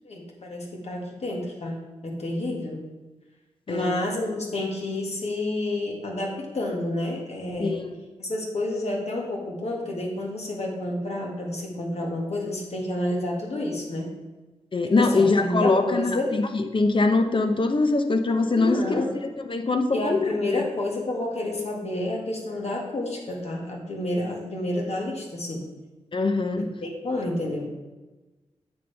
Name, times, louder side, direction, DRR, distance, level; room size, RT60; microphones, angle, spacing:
voice 1, 0.0-2.8 3.7-7.8 8.2-14.1 15.0-16.3 18.6-19.1 19.9-25.6 26.6-27.7, left 1 dB, 60° left, -1 dB, 1.9 m, -29 dB
voice 2, 7.6-7.9 14.7-18.8 19.5-20.6 26.1-26.7, left 3 dB, 45° left, 7 dB, 0.8 m, -23 dB
9.2 x 7.0 x 3.5 m, 1.2 s
wide cardioid pair, 75°, 12 cm